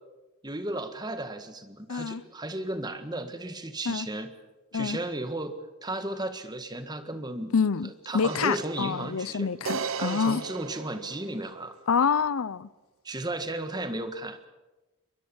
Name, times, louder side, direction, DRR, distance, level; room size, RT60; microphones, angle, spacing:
voice 1, 0.4-4.3 4.7-7.5 7.8-9.5 10.0-11.8 13.0-14.5, right 1 dB, 20° right, 9 dB, 1.7 m, -34 dB
voice 2, 1.9-2.2 3.9-4.1 4.7-5.0 7.5-10.4 11.9-12.7, left 5 dB, 85° left, 19 dB, 0.7 m, -27 dB
sound 1, 8.3-11.7, right 5 dB, 70° right, 1.0 m, -37 dB
22.5 x 21.5 x 7.2 m, 1.1 s
head